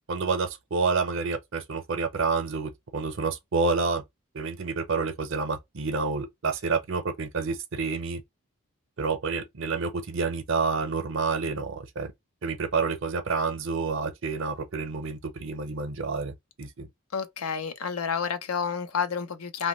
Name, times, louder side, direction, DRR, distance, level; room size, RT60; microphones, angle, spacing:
voice 1, 0.1-4.0 4.3-8.2 9.0-12.1 12.4-16.9, right 4 dB, 60° right, 0.6 m, -29 dB
voice 2, 17.1-19.7, left 6 dB, 90° left, 0.6 m, -30 dB
2.9 x 2.2 x 2.9 m
head